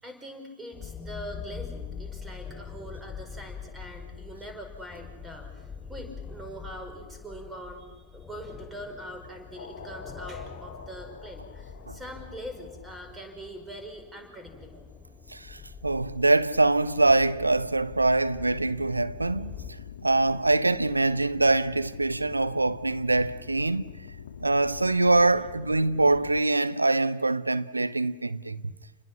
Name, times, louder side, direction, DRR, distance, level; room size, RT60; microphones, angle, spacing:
voice 1, 0.0-14.9, equal, 10° right, 4.9 m, -43 dB
sound 1, 0.7-19.7, left 6 dB, 15° left, 4.4 m, -44 dB
sound 2, 9.6-13.5 16.9-26.4, left 6 dB, 65° left, 1.5 m, -45 dB
voice 2, 15.3-19.5 20.0-23.8 24.4-28.7, right 2 dB, 80° right, 0.7 m, -24 dB
29.0 x 21.0 x 6.0 m
figure-of-eight pair, 90°, 0 cm